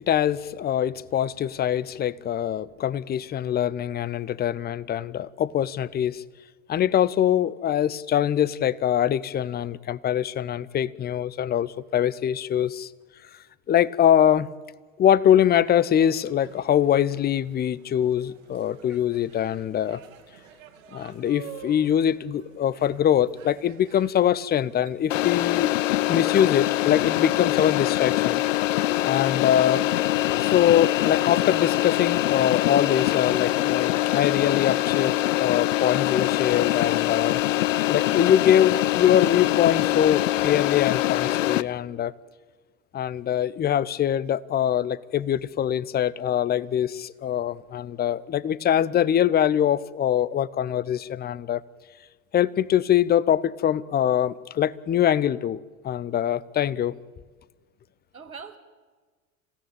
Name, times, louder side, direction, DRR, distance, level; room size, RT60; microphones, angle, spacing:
voice 1, 0.0-6.2 6.7-12.9 13.7-14.5 15.0-20.0 20.9-25.7 26.1-28.4 29.0-29.8 30.4-37.4 37.9-42.1 42.9-51.6 52.3-57.0, left 10 dB, 25° left, 0.7 m, -23 dB
sound 1, 16.0-27.0, right 8 dB, 65° right, 2.6 m, -50 dB
sound 2, 25.1-41.6, left 15 dB, 65° left, 0.7 m, -24 dB
voice 2, 30.3-30.6 58.1-58.6, right 6 dB, 80° right, 1.9 m, -43 dB
27.5 x 16.5 x 9.0 m
figure-of-eight pair, 75°, 42 cm